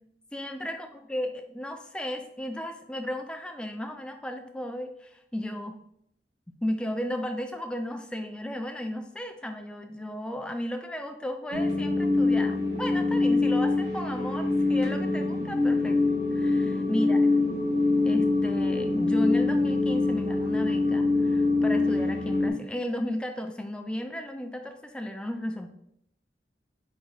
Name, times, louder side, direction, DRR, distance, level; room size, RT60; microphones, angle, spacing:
voice 1, 0.3-5.8 6.5-17.2 18.0-25.7, left 1 dB, 5° left, 5 dB, 0.3 m, -34 dB
sound 1, 11.5-22.5, left 3 dB, 80° right, 1.7 m, -24 dB
4.1 x 2.7 x 3.9 m, 0.73 s
head